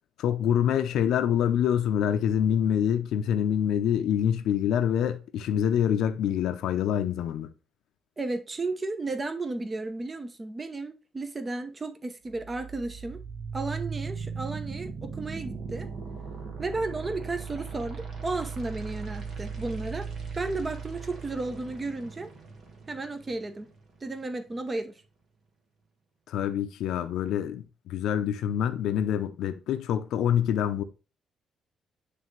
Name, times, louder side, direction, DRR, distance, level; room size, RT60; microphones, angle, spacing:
voice 1, 0.2-7.5 26.3-30.8, left 9 dB, 80° left, 0.6 m, -26 dB
voice 2, 8.2-13.2 13.5-15.9 16.6-20.1 20.4-22.3 22.9-23.7 24.0-25.0, right 3 dB, 25° right, 0.8 m, -33 dB
sound 1, 12.3-24.3, right 5 dB, 60° right, 1.7 m, -38 dB
9.3 x 3.4 x 3.2 m
cardioid pair, 90°, 0 cm